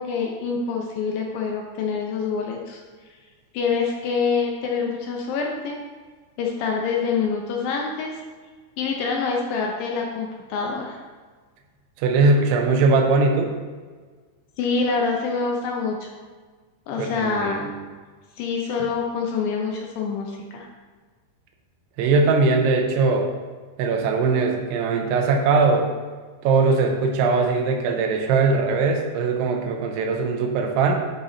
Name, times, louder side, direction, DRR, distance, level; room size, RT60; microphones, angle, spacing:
voice 1, 0.0-2.8 3.5-5.8 6.4-8.2 8.8-11.0 14.6-16.1 16.9-17.7 18.4-20.7, left 5 dB, 80° left, 1 dB, 2.1 m, -26 dB
voice 2, 12.0-13.5 17.0-17.7 22.0-23.3 23.8-25.9 26.4-31.1, right 4 dB, 85° right, 2 dB, 2.7 m, -20 dB
10.5 x 3.9 x 4.2 m, 1.5 s
omnidirectional pair, 4.8 m